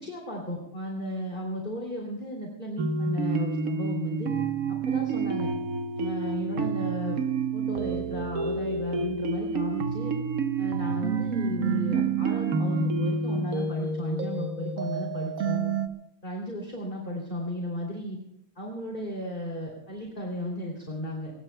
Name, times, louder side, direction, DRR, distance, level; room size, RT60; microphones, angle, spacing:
voice 1, 0.0-4.3 4.7-5.5 6.0-7.2 7.5-10.1 10.6-15.7 16.2-18.2 18.5-21.3, equal, 20° left, -1 dB, 3.1 m, -34 dB
sound 1, 2.8-15.9, right 4 dB, 50° right, 1.3 m, -29 dB
24.0 x 21.0 x 2.3 m, 0.78 s
omnidirectional pair, 2.3 m